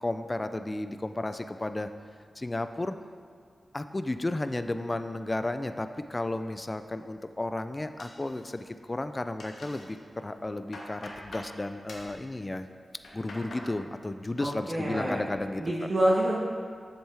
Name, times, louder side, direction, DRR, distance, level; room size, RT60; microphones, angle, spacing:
voice 1, 0.0-1.9 2.4-3.0 3.7-12.7 13.1-15.6, left 2 dB, 25° left, 9 dB, 0.3 m, -33 dB
sound 1, 8.0-8.8 9.1-9.9 10.3-11.5 11.9-12.2 12.8-13.7 14.1-14.6 14.9-15.4, left 2 dB, 85° left, 1.2 m, -46 dB
voice 2, 14.4-15.2 15.6-16.4, right 1 dB, 50° right, -5 dB, 1.2 m, -27 dB
7.7 x 7.2 x 3.4 m, 2.1 s
cardioid pair, 65°, 0 cm